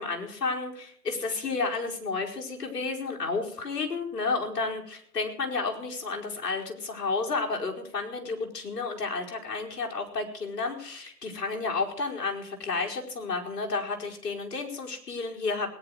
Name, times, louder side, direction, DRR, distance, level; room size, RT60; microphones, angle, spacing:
voice 1, 0.0-15.7, left 4 dB, 80° left, 1 dB, 4.8 m, -31 dB
20.5 x 11.0 x 4.8 m, 0.62 s
hypercardioid pair, 125°, 48 cm